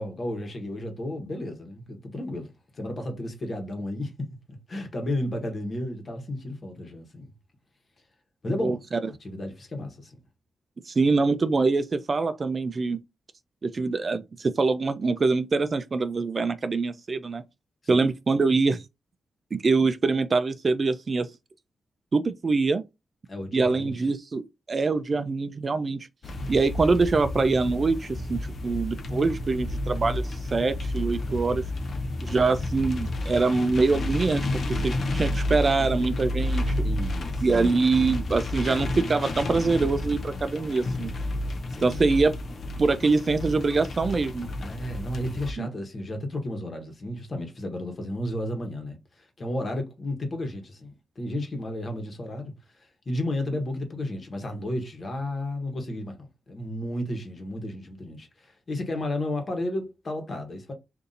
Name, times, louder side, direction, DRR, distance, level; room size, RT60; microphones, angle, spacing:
voice 1, 0.0-4.3 4.7-7.3 8.4-8.8 9.1-10.2 17.9-18.1 23.3-24.1 36.8-37.5 41.7-42.0 44.6-60.7, left 1 dB, 50° left, 1.1 m, -33 dB
voice 2, 8.6-9.0 10.9-13.0 13.6-17.4 17.9-18.8 19.5-21.3 22.1-22.8 23.5-26.1 26.5-31.6 32.2-36.7 37.4-41.1 41.8-42.3 42.8-44.5 45.6-45.7, right 3 dB, 45° right, 0.4 m, -24 dB
sound 1, 26.2-45.5, left 1 dB, 65° left, 0.6 m, -31 dB
2.6 x 2.6 x 3.9 m
cardioid pair, 65°, 0 cm